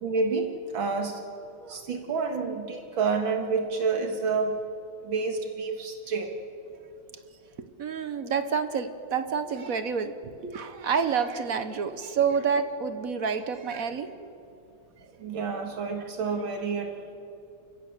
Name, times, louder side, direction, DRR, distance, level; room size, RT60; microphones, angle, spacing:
voice 1, 0.0-1.2 1.7-4.6 5.0-6.3 10.4-10.5 15.2-17.1, right 4 dB, 75° right, 4 dB, 2.3 m, -29 dB
voice 2, 7.6-10.1 10.5-14.3 16.3-16.5, right 6 dB, 50° right, 10 dB, 1.2 m, -29 dB
28.5 x 16.0 x 6.7 m, 2.7 s
omnidirectional pair, 2.2 m